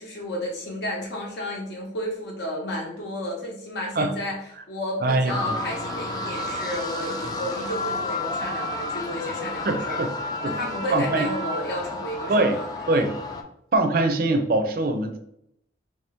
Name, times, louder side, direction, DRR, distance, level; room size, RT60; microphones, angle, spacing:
voice 1, 0.0-4.4 4.7-10.0 10.4-13.0, left 1 dB, 70° left, -2 dB, 0.8 m, -32 dB
voice 2, 5.0-5.6 7.2-7.3 9.7-10.1 10.4-10.5 10.9-11.3 12.3-12.6 12.9-13.1 13.7-15.2, right 2 dB, 50° right, 7 dB, 0.5 m, -23 dB
sound 1, 5.3-13.4, left 2 dB, 20° left, 0.3 m, -31 dB
3.2 x 2.8 x 3.4 m, 0.74 s
head